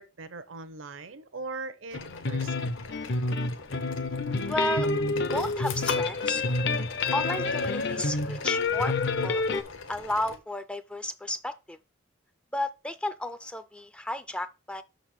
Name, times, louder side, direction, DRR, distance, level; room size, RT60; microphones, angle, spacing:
voice 1, 0.0-2.6, right 3 dB, 70° right, 0.7 m, -40 dB
sound 1, 1.9-10.4, left 5 dB, 75° left, 0.9 m, -41 dB
sound 2, 1.9-9.6, left 3 dB, 55° left, 0.6 m, -28 dB
voice 2, 4.5-4.9 5.3-6.4 7.1-9.0 9.2-11.8 12.5-14.8, left 1 dB, 5° left, 0.3 m, -33 dB
6.0 x 4.1 x 6.1 m
head